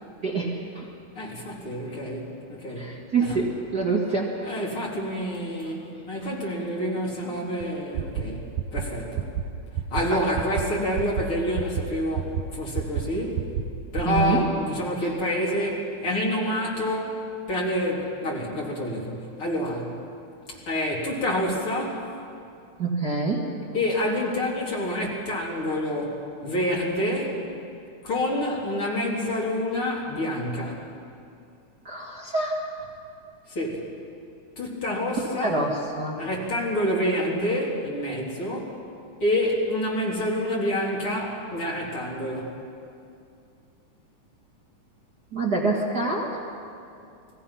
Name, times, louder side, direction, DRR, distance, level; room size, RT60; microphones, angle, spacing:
voice 1, 0.2-0.9 2.8-4.5 10.0-10.2 14.0-14.4 15.0-15.1 22.8-23.5 31.8-32.6 35.4-36.2 45.3-46.5, right 3 dB, 35° right, -3 dB, 2.3 m, -26 dB
voice 2, 1.2-3.4 4.4-9.3 9.9-13.5 13.9-20.0 20.5-22.1 23.7-27.4 28.0-30.8 33.5-33.9 34.6-35.6 36.2-38.8 39.2-42.6, left 1 dB, 40° left, -3 dB, 4.3 m, -28 dB
sound 1, 7.6-7.7 8.0-8.2 8.6-8.8 9.2-9.4 9.8-10.0 10.4-10.6 11.0-11.2 11.6-11.8 12.2-12.4 12.8-13.0 13.4-13.6 14.0-14.2, right 10 dB, 80° right, 2.5 m, -27 dB
30.0 x 21.5 x 5.8 m, 2.5 s
omnidirectional pair, 3.6 m